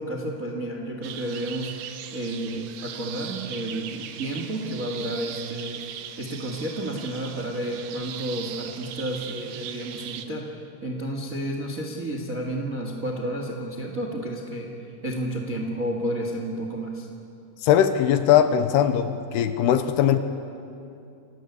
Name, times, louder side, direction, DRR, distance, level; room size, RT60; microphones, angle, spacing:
voice 1, 0.0-14.7 15.0-17.1, right 1 dB, 40° right, 2 dB, 1.2 m, -31 dB
sound 1, 1.0-10.3, right 10 dB, 90° right, 3.5 m, -39 dB
voice 2, 17.6-20.2, left 10 dB, 75° left, 9 dB, 2.8 m, -20 dB
28.0 x 18.5 x 8.3 m, 2.6 s
omnidirectional pair, 5.0 m